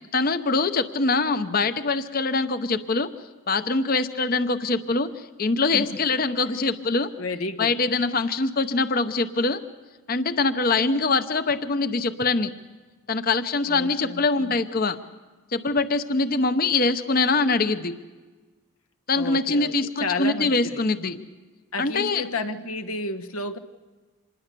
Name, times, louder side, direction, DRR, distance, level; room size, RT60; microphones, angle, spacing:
voice 1, 0.1-3.1 3.5-7.1 7.6-9.6 10.1-12.5 13.1-15.0 15.5-17.9 19.1-21.2 21.8-22.2, left 3 dB, 40° left, 11 dB, 0.8 m, -23 dB
voice 2, 6.8-7.8 13.7-14.5 19.1-19.7 20.0-20.8 21.7-23.6, left 3 dB, 85° left, 8 dB, 1.2 m, -32 dB
26.0 x 20.5 x 6.8 m, 1.3 s
head